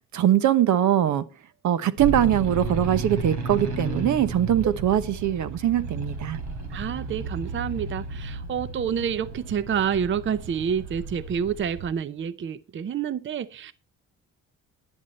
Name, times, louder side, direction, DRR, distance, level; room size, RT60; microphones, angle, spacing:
voice 1, 0.1-1.3 1.6-6.4, right 11 dB, 70° right, 1.1 m, -22 dB
sound 1, 2.0-11.9, right 3 dB, 90° right, 3.5 m, -33 dB
voice 2, 6.7-13.7, right 7 dB, 40° right, 0.7 m, -28 dB
11.0 x 11.0 x 4.1 m
cardioid pair, 90°, 30 cm